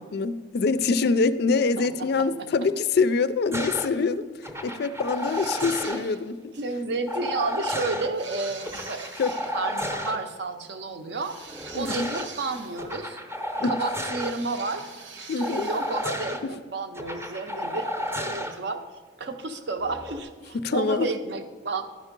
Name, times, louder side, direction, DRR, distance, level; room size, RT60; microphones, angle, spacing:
voice 1, 0.0-4.3 4.6-6.5 9.2-9.3 11.8-12.1 13.6-13.8 15.3-15.7 16.4-16.5 20.5-21.1, left 4 dB, 55° left, 13 dB, 0.4 m, -25 dB
voice 2, 1.8-2.5 6.5-9.2 9.5-11.4 11.7-13.2 13.6-14.9 15.4-18.8 19.2-21.8, right 3 dB, 60° right, 8 dB, 0.6 m, -31 dB
sound 1, 3.5-3.9 4.4-6.0 7.1-8.1 8.6-10.2 11.5-12.3 12.8-14.3 15.4-16.4 16.9-18.5 19.8-20.2, left 1 dB, 15° right, 0.7 m, -32 dB
sound 2, 5.2-6.3 8.1-9.5 11.1-13.2 14.2-16.2, right 4 dB, 80° right, 1.2 m, -43 dB
11.5 x 5.4 x 5.2 m, 1.4 s
head